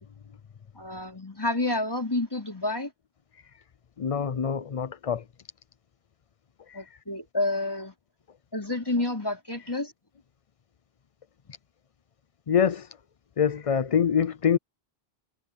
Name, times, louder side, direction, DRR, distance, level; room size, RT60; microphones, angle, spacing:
voice 1, 0.7-2.9 6.7-7.9 8.5-9.9, left 2 dB, 20° left, 4.8 m, -29 dB
voice 2, 4.0-5.2 6.7-6.8 12.5-12.9 13.4-14.6, left 7 dB, 45° left, 0.5 m, -25 dB
omnidirectional pair, 1.1 m